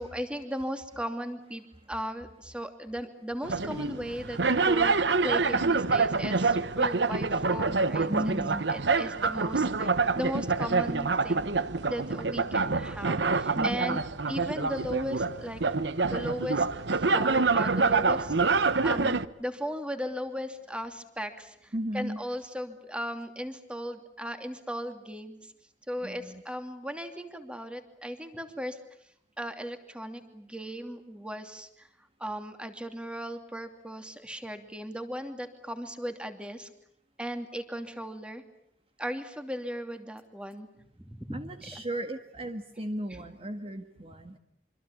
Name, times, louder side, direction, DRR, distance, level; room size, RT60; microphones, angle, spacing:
voice 1, 0.0-1.6 1.9-8.4 8.7-11.5 11.9-14.0 14.3-15.6 16.0-16.7 16.9-25.5 25.9-28.8 29.4-31.9 32.2-36.7 37.2-38.4 39.0-40.7 41.0-41.4 41.7-41.8, equal, 5° right, 7 dB, 2.8 m, -37 dB
sound 1, 3.4-19.2, right 4 dB, 70° right, 1.0 m, -26 dB
voice 2, 8.1-8.7 9.2-9.3 13.5-14.0 15.7-15.8 16.0-16.2 21.7-22.2 26.0-26.4 41.3-44.4, right 1 dB, 30° right, 6 dB, 1.7 m, -35 dB
26.0 x 26.0 x 8.5 m, 0.73 s
head